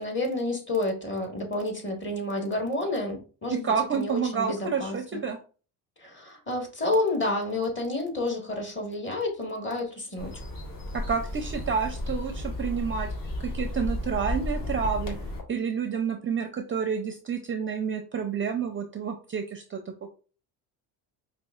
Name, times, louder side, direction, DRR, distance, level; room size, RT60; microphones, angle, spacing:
voice 1, 0.0-3.7 3.9-5.2 6.0-10.3, left 2 dB, 25° left, 2 dB, 1.5 m, -30 dB
voice 2, 3.5-5.4 10.9-13.1 13.4-15.2 15.5-19.8, right 6 dB, 30° right, 5 dB, 0.4 m, -29 dB
sound 1, 10.2-15.4, left 1 dB, 45° left, 1.4 m, -33 dB
5.2 x 2.5 x 2.4 m, 0.37 s
cardioid pair, 90°, 45 cm